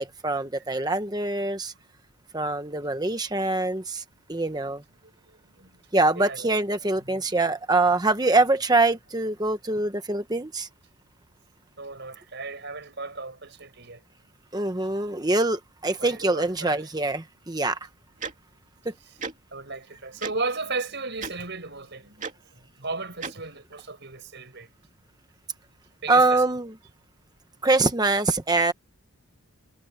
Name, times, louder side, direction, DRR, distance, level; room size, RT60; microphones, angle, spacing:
voice 1, 0.0-1.7 2.3-4.0 4.3-4.8 5.9-10.7 14.5-17.8 18.8-18.9 26.1-26.7 27.6-28.7, right 2 dB, 15° right, 1.0 m, -24 dB
voice 2, 5.0-5.8 6.1-6.5 7.1-7.3 11.8-14.0 16.0-16.9 19.5-22.2 22.8-24.7 26.0-26.4, right 3 dB, 50° right, 5.6 m, -35 dB
Tick-tock, 18.2-18.3 19.2-19.3 20.2-20.3 21.2-21.3 22.2-22.3 23.2-23.3, right 5 dB, 35° right, 2.4 m, -33 dB
head